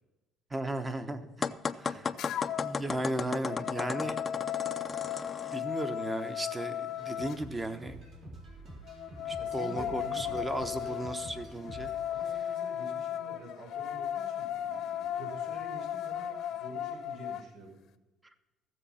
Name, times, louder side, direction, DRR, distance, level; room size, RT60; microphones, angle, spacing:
voice 1, 0.5-1.5 1.8-2.1 2.6-4.2 5.5-8.0 9.2-11.9, right 1 dB, 15° right, 9 dB, 1.1 m, -35 dB
sound 1, 1.4-5.6, left 5 dB, 25° left, 0.5 m, -35 dB
voice 2, 1.8-2.1 9.4-10.4 10.7-11.0 12.1-17.8, right 2 dB, 80° right, 1 dB, 4.9 m, -48 dB
sound 2, 2.2-2.8 3.2-7.4 8.9-17.5, left 10 dB, 60° left, 0.8 m, -36 dB
sound 3, 7.0-12.0, right 1 dB, 55° right, 4.1 m, -48 dB
15.5 x 7.5 x 5.7 m, 1.1 s
cardioid pair, 130°, 0 cm